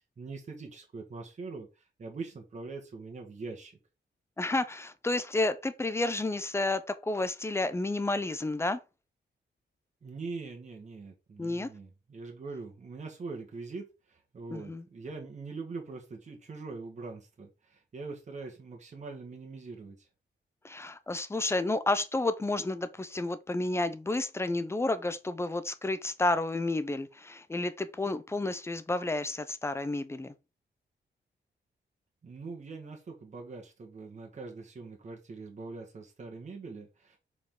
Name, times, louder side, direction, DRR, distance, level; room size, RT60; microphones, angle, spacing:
voice 1, 0.0-1.7 2.0-3.8 10.0-20.1 32.2-37.2, right 4 dB, 40° right, 1.6 m, -43 dB
voice 2, 4.4-8.8 11.4-11.7 14.5-14.8 20.6-30.3, left 2 dB, 15° left, 0.6 m, -31 dB
6.9 x 4.9 x 3.8 m
wide cardioid pair, 160°, 19 cm